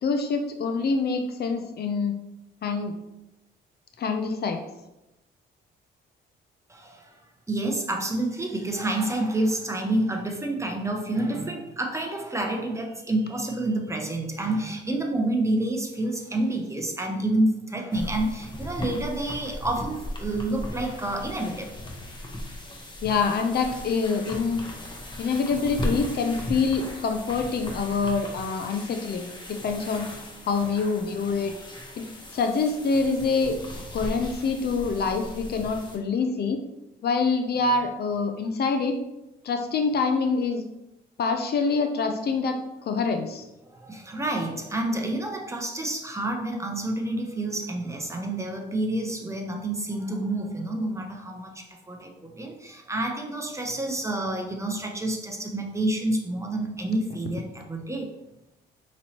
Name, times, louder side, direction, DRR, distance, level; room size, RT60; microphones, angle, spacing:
voice 1, 0.0-2.1 2.6-2.9 4.0-4.6 23.0-24.6 25.2-30.1 30.5-31.5 32.3-33.6 33.9-36.6 37.0-38.9 39.4-40.6 41.2-43.4, left 4 dB, 55° left, 5 dB, 0.6 m, -26 dB
voice 2, 6.7-7.2 7.5-21.7 43.8-58.1, right 1 dB, 15° right, 2 dB, 0.7 m, -28 dB
sound 1, 17.9-36.0, left 1 dB, 25° left, 0.9 m, -37 dB
5.2 x 3.1 x 2.9 m, 0.92 s
cardioid pair, 90°, 20 cm